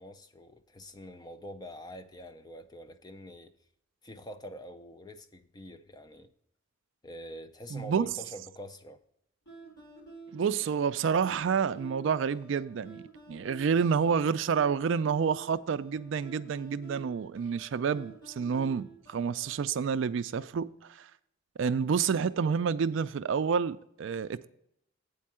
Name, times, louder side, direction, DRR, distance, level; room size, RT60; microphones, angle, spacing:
voice 1, 0.0-3.5 4.0-6.3 7.0-9.0, equal, 20° left, 0.4 m, -45 dB
voice 2, 7.7-8.1 10.3-21.1 21.6-24.5, right 6 dB, 65° right, 0.3 m, -29 dB
sound 1, 9.5-19.5, right 3 dB, 80° left, 3.0 m, -50 dB
8.5 x 4.5 x 7.3 m
head